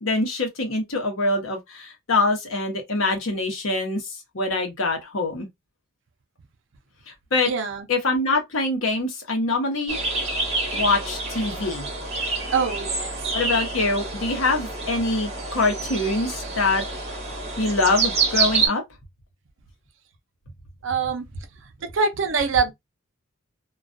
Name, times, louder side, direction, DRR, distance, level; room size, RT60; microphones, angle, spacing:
voice 1, 0.0-4.0 4.3-5.5 7.1-7.5 7.9-10.0 10.7-11.9 13.3-16.8 17.6-18.8, left 2 dB, 70° left, 0.8 m, -24 dB
voice 2, 7.5-7.9 12.5-13.2 20.8-21.2 21.8-22.7, right 5 dB, 60° right, 0.5 m, -24 dB
sound 1, 9.9-18.7, right 4 dB, 30° right, 0.9 m, -27 dB
2.3 x 2.2 x 2.4 m
head